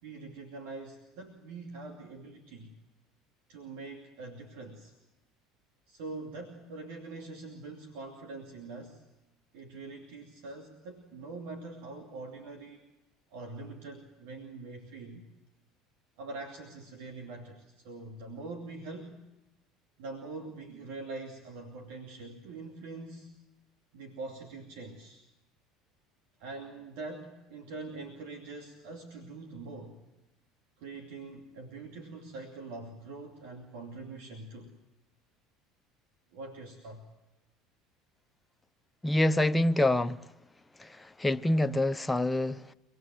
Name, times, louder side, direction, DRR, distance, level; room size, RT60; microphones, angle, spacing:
voice 1, 0.0-2.7 3.5-4.9 5.9-9.0 9.5-12.8 13.3-15.2 16.2-19.2 20.0-23.3 23.9-25.2 26.4-30.0 30.8-34.7 36.3-37.1, right 3 dB, 75° right, 2.5 m, -44 dB
voice 2, 39.0-40.2 40.8-42.7, left 1 dB, 10° left, 0.8 m, -26 dB
25.5 x 19.5 x 7.7 m
supercardioid pair, 85°, 0 cm